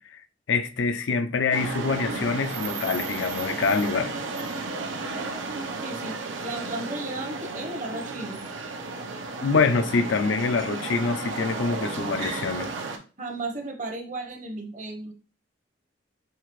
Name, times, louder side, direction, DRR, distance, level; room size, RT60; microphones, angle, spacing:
voice 1, 0.5-4.1 9.4-12.7, left 4 dB, 75° left, 0.5 m, -25 dB
sound 1, 1.5-13.0, right 3 dB, 80° right, 0.7 m, -33 dB
voice 2, 5.8-6.1 6.4-8.4 13.2-15.1, right 2 dB, 40° right, 0.8 m, -34 dB
5.5 x 2.8 x 3.0 m
head